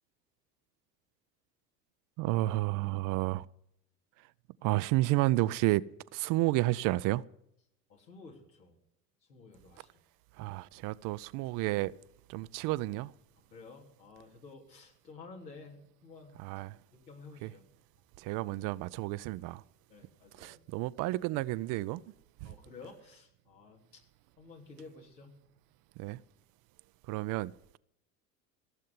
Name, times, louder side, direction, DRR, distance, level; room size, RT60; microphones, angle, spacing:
voice 1, 2.2-3.5 4.6-5.8 6.1-7.2 10.4-11.9 12.3-13.1 16.4-16.8 17.4-17.5 18.2-19.6 20.4-22.0 22.4-22.5 26.0-26.2 27.1-27.8, right 18 dB, 45° right, 0.5 m, -31 dB
voice 2, 7.9-8.7 9.3-9.9 13.5-16.4 16.9-17.6 19.9-20.6 22.4-24.0 24.4-25.4, left 4 dB, 85° left, 3.3 m, -52 dB
15.5 x 7.6 x 9.4 m
hypercardioid pair, 75°, 49 cm